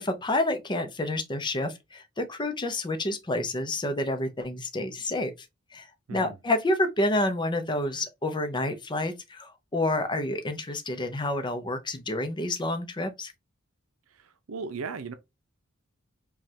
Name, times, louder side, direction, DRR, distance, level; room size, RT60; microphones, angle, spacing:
voice 1, 0.0-5.3 5.7-13.3, left 1 dB, 20° left, 0.6 m, -29 dB
voice 2, 6.1-6.4 14.1-15.1, right 4 dB, 85° right, 0.6 m, -37 dB
5.1 x 2.4 x 2.8 m
head